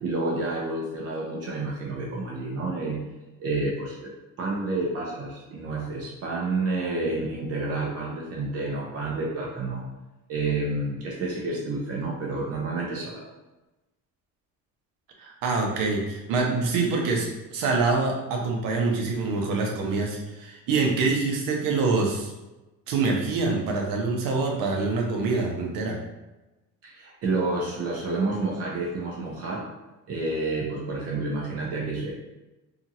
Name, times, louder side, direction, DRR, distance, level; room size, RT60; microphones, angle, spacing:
voice 1, 0.0-3.0 3.4-9.8 10.3-13.3 26.8-29.6 30.1-32.1, right 2 dB, 45° right, -3 dB, 0.6 m, -29 dB
voice 2, 15.2-22.3 22.9-26.0, right 3 dB, 85° right, 1 dB, 0.7 m, -25 dB
2.8 x 2.4 x 2.7 m, 1.0 s
cardioid pair, 155°, 33 cm